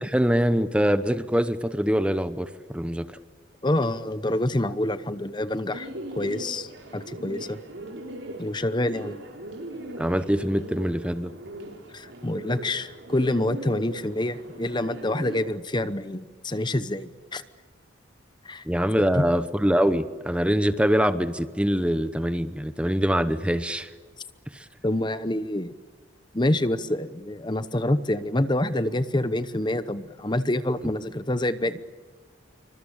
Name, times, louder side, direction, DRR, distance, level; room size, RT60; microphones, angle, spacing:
voice 1, 0.0-3.1 10.0-11.3 18.7-23.9 24.5-24.6, equal, 5° right, 11 dB, 0.9 m, -24 dB
voice 2, 3.6-7.6 8.4-9.2 11.9-17.4 18.4-18.7 19.1-19.2 24.8-25.7 26.3-31.8, left 1 dB, 20° left, 13 dB, 0.9 m, -27 dB
Bird, 5.7-15.4, right 1 dB, 65° right, 5.0 m, -39 dB
27.0 x 24.5 x 8.7 m, 1.5 s
head